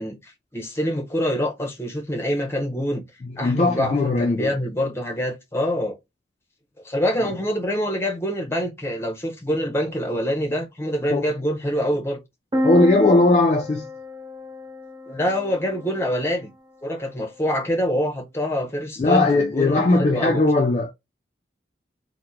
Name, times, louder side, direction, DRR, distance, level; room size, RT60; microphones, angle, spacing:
voice 1, 0.0-3.0 3.4-6.0 6.8-12.2 15.1-16.5 16.8-20.4, equal, 15° left, 0.7 m, -25 dB
voice 2, 3.2-4.5 11.1-11.3 12.6-13.9 19.0-20.9, left 2 dB, 35° left, 0.3 m, -19 dB
sound 1, 12.5-16.3, equal, 25° right, 0.5 m, -30 dB
2.9 x 2.1 x 3.5 m
head